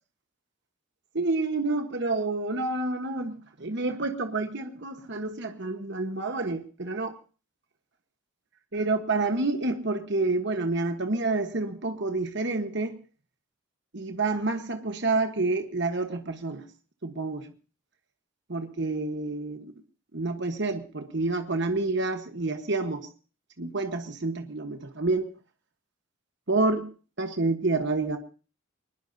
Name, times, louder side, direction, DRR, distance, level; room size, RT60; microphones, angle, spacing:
voice 1, 1.1-7.2 8.7-13.0 13.9-16.6 17.0-17.5 18.5-19.7 20.1-23.1 23.6-25.3 26.5-26.9 27.2-28.2, right 3 dB, 55° right, 7 dB, 1.2 m, -28 dB
22.0 x 20.5 x 2.7 m, 0.37 s
head